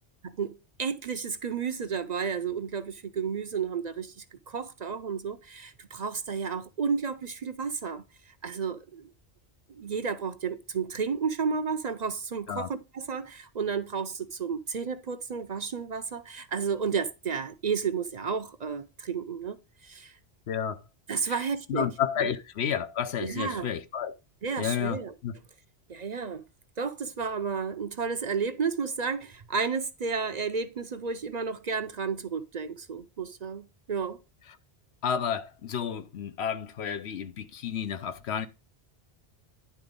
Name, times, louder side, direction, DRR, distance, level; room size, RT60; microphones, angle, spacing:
voice 1, 0.2-8.0 8.4-9.1 9.7-19.6 19.8-20.1 21.1-21.9 22.2-22.3 23.2-23.7 24.4-25.1 25.9-26.4 26.8-34.2, right 5 dB, 45° right, 0.7 m, -32 dB
voice 2, 20.5-20.8 21.3-21.4 21.7-24.1 24.6-25.4 35.0-38.5, left 8 dB, 85° left, 1.1 m, -31 dB
10.5 x 3.9 x 5.1 m
omnidirectional pair, 1.1 m